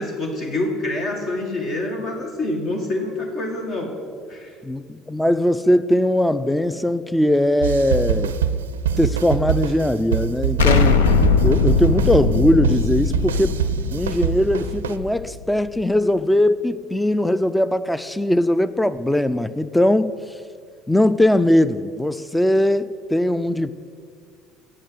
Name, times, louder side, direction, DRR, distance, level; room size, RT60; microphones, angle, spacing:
voice 1, 0.0-3.9 4.3-4.6, left 2 dB, 55° left, 2 dB, 1.8 m, -26 dB
voice 2, 4.6-8.3 9.0-11.0 11.4-13.6 13.9-20.1 20.9-23.7, left 1 dB, 5° left, 14 dB, 0.4 m, -20 dB
sound 1, 7.6-15.0, right 8 dB, 90° right, 0.4 m, -24 dB
Explosion, 10.6-15.4, left 5 dB, 85° left, 0.6 m, -20 dB
8.5 x 8.5 x 7.9 m, 2.2 s
hypercardioid pair, 65°, 0 cm